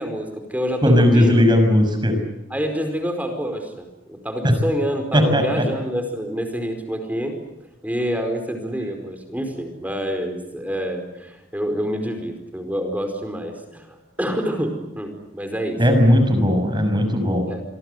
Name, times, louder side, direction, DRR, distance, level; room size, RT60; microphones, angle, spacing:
voice 1, 0.0-1.5 2.5-7.4 7.8-15.8 17.5-17.6, equal, 10° right, 5 dB, 4.8 m, -27 dB
voice 2, 0.8-2.2 4.4-4.6 5.1-5.4 15.8-17.5, left 1 dB, 25° right, 6 dB, 6.0 m, -17 dB
27.5 x 23.5 x 8.1 m, 0.94 s
head